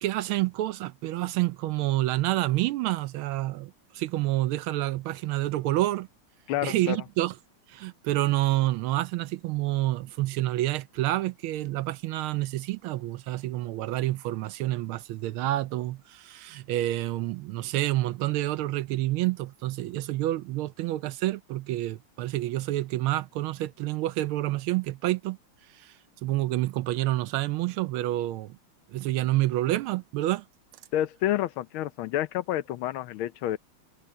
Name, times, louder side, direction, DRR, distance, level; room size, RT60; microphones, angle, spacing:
voice 1, 0.0-6.1 6.6-7.3 7.7-25.4 25.7-26.0 26.2-28.5 28.9-30.4, right 16 dB, 80° right, 1.4 m, -28 dB
voice 2, 6.5-7.0 30.9-33.6, left 13 dB, 75° left, 1.4 m, -29 dB
omnidirectional pair, 2.4 m